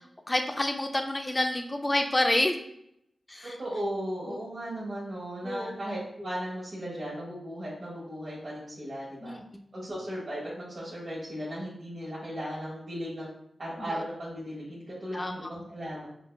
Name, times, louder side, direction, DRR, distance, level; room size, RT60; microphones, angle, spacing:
voice 1, 0.3-2.6 3.3-3.5 4.3-4.4 5.4-5.8 9.2-9.4 15.1-15.3, left 1 dB, 25° left, 5 dB, 0.3 m, -28 dB
voice 2, 3.4-9.3 9.7-13.3 13.6-16.1, equal, 50° right, -9 dB, 1.2 m, -36 dB
5.3 x 2.2 x 2.3 m, 0.74 s
cardioid pair, 65°, 0 cm